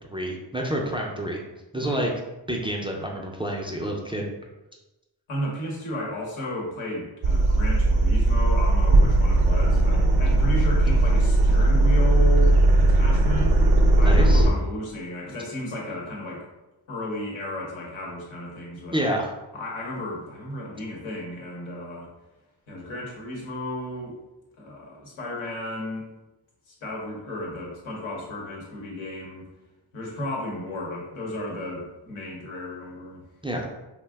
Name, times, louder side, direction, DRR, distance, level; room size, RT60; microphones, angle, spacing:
voice 1, 0.1-1.4 1.7-2.1 2.5-4.3 14.0-14.5 18.9-19.3 33.4-33.7, right 1 dB, 10° right, -1 dB, 0.4 m, -28 dB
voice 2, 5.3-13.6 13.8-16.5 16.9-19.0 19.5-22.1 22.7-24.2 24.6-26.0 26.7-29.5 29.9-33.3, left 1 dB, 90° left, -3 dB, 1.0 m, -33 dB
sound 1, 7.2-14.5, right 2 dB, 50° right, 0.6 m, -18 dB
2.5 x 2.1 x 3.4 m, 1.0 s
cardioid pair, 55°, 48 cm